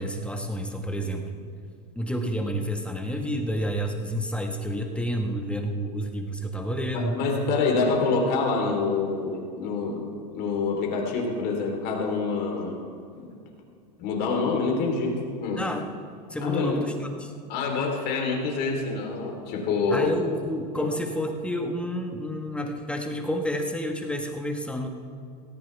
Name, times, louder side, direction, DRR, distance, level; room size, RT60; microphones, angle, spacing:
voice 1, 0.0-1.4 1.9-7.2 15.5-15.9 16.3-17.3 19.9-24.9, equal, 5° left, 3 dB, 1.6 m, -29 dB
voice 2, 6.9-10.0 10.3-12.8 14.0-15.6 16.4-16.8 17.5-20.1 20.8-20.9, left 4 dB, 50° left, 0 dB, 3.7 m, -26 dB
17.5 x 15.5 x 3.5 m, 2.3 s
hypercardioid pair, 95°, 21 cm